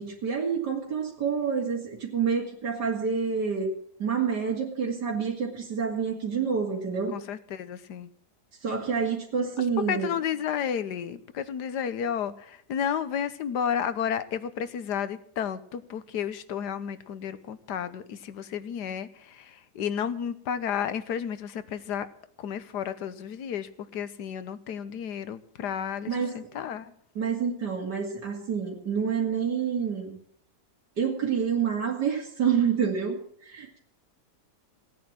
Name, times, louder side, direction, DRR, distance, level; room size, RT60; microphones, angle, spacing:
voice 1, 0.0-3.7 4.0-7.2 8.6-10.1 26.0-26.3 27.1-30.2 31.0-33.8, right 6 dB, 85° right, -2 dB, 3.0 m, -28 dB
voice 2, 7.1-8.1 9.9-22.1 22.4-26.9, left 8 dB, 85° left, 13 dB, 1.5 m, -32 dB
17.0 x 9.3 x 7.6 m, 0.64 s
omnidirectional pair, 1.8 m